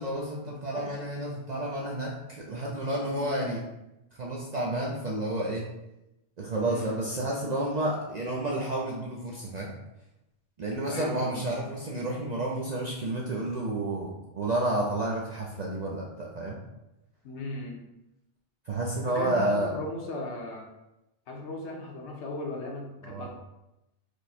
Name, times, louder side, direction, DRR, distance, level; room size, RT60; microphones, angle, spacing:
voice 1, 0.0-3.6 4.2-5.7 6.4-9.7 10.6-16.6 18.7-19.7 23.0-23.3, right 1 dB, 50° right, -3 dB, 0.5 m, -30 dB
voice 2, 3.2-3.6 6.6-7.0 10.8-11.6 17.2-17.8 19.1-20.7 21.3-23.3, left 2 dB, 70° left, 0 dB, 1.1 m, -37 dB
4.7 x 2.1 x 4.2 m, 0.93 s
omnidirectional pair, 1.2 m